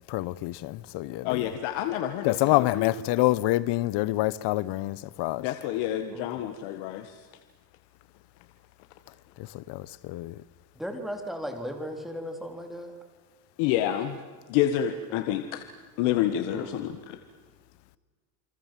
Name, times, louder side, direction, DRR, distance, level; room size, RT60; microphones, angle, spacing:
voice 1, 0.1-1.5 2.2-5.5 9.4-10.4, left 17 dB, 55° left, 1.0 m, -27 dB
voice 2, 1.2-2.9 5.4-7.2 13.6-14.2 14.5-15.6 16.0-17.2, left 11 dB, 75° left, 1.7 m, -28 dB
voice 3, 10.7-12.9 16.5-16.7, equal, ahead, 3.4 m, -36 dB
28.5 x 24.5 x 7.6 m
cardioid pair, 140°, 49 cm